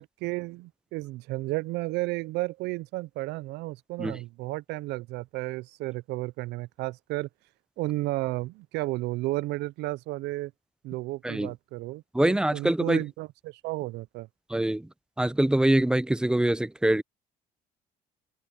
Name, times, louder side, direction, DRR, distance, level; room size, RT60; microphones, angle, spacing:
voice 1, 0.0-7.3 7.8-10.5 10.8-14.3, right 20 dB, 80° right, 0.4 m, -33 dB
voice 2, 12.1-13.0 14.5-14.9 15.2-17.0, right 1 dB, 5° right, 0.5 m, -24 dB
cardioid pair, 110°, 17 cm